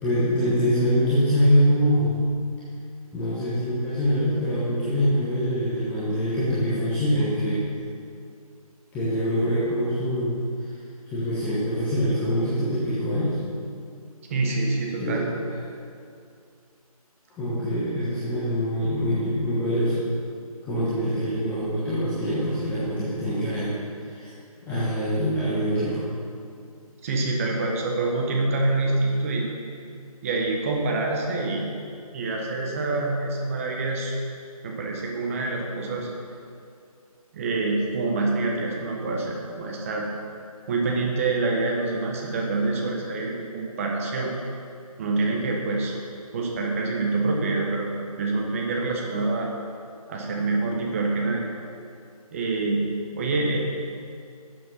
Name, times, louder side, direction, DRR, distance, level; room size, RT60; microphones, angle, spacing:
voice 1, 0.0-2.2 3.1-7.6 8.9-10.7 11.1-13.4 15.0-15.2 17.4-20.1 20.6-23.8 24.0-24.3 24.7-26.1, equal, 10° left, -12 dB, 1.4 m, -24 dB
voice 2, 14.3-15.3 27.0-29.5 30.2-31.7 32.1-34.1 34.6-36.1 37.3-40.0 40.7-44.3 45.0-45.9 46.3-47.9 48.2-49.5 50.1-51.4 52.3-52.9 53.1-53.6, right 3 dB, 20° right, 0 dB, 1.3 m, -26 dB
12.5 x 7.6 x 5.8 m, 2.4 s
figure-of-eight pair, 160°, 19 cm